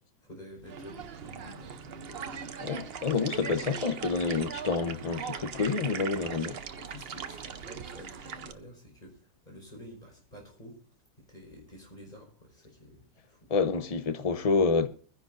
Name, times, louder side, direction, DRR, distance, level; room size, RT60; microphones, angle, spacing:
voice 1, 0.2-2.5 3.2-3.9 6.8-9.1 9.4-10.7 11.3-13.4, equal, 20° left, 5.0 m, -49 dB
sound 1, 0.6-8.5, right 7 dB, 70° right, 0.5 m, -40 dB
voice 2, 2.6-6.6 13.5-14.9, left 4 dB, 50° left, 0.4 m, -28 dB
23.5 x 10.5 x 2.6 m
omnidirectional pair, 2.1 m